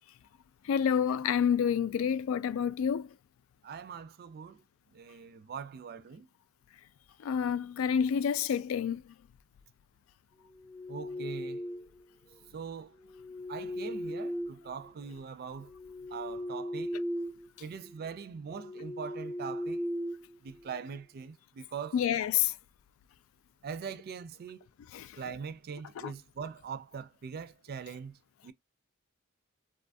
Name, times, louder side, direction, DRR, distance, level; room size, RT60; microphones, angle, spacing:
voice 1, 0.7-3.1 7.2-9.0 21.9-22.5 24.9-25.1 26.0-26.1, left 8 dB, 75° left, 0.3 m, -28 dB
voice 2, 3.6-4.6 4.9-6.3 10.9-11.6 12.5-12.9 13.5-15.7 16.1-16.9 17.6-19.8 20.4-22.0 23.6-24.7 25.2-28.2 28.4-28.5, right 6 dB, 50° right, 0.4 m, -42 dB
sound 1, 10.5-12.0 13.0-15.1 15.6-17.5 17.8-18.0 18.5-20.9, equal, 30° left, 0.6 m, -38 dB
2.6 x 2.3 x 2.5 m
head